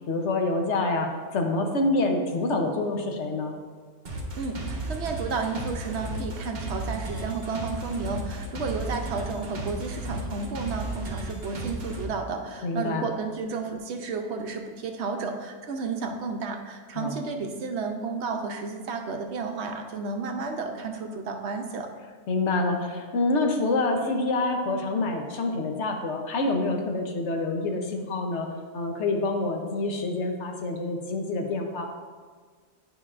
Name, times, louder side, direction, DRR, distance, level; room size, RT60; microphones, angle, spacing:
voice 1, 0.1-3.5 12.6-13.0 17.0-17.2 22.3-28.5 28.7-31.9, left 2 dB, 70° left, 3 dB, 1.1 m, -27 dB
sound 1, 4.0-12.1, right 2 dB, 45° right, 1.0 m, -34 dB
voice 2, 4.4-21.9, right 4 dB, 70° right, 4 dB, 0.9 m, -32 dB
9.7 x 5.1 x 2.4 m, 1.5 s
omnidirectional pair, 1.2 m